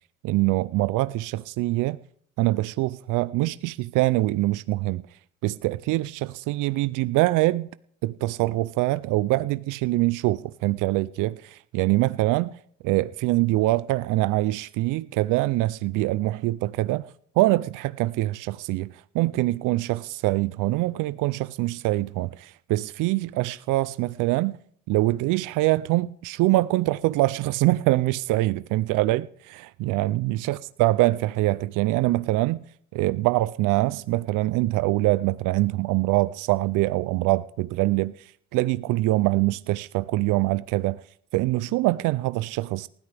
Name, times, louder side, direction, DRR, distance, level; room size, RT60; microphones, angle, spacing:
voice 1, 0.2-2.0 2.4-5.1 5.4-7.7 8.0-12.6 12.8-24.6 24.9-32.6 32.9-41.0 41.3-42.9, right 18 dB, 80° right, 0.5 m, -24 dB
19.5 x 13.0 x 3.4 m
cardioid pair, 125°, 31 cm